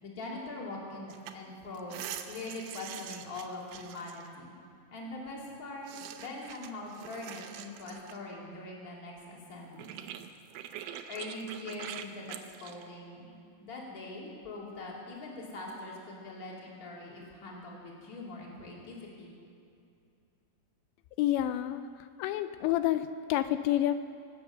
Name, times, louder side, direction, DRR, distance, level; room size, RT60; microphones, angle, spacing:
voice 1, 0.0-4.5 4.9-9.9 11.1-13.3 13.6-19.3, left 2 dB, 25° left, -3 dB, 2.4 m, -42 dB
sound 1, 1.1-1.3 1.7-4.3 5.9-8.2 9.5-9.6 9.8-12.9, right 10 dB, 80° right, 2.1 m, -44 dB
voice 2, 21.2-21.8 22.2-23.9, left 13 dB, 85° left, 11 dB, 2.8 m, -28 dB
24.5 x 8.6 x 6.8 m, 2.6 s
omnidirectional pair, 5.2 m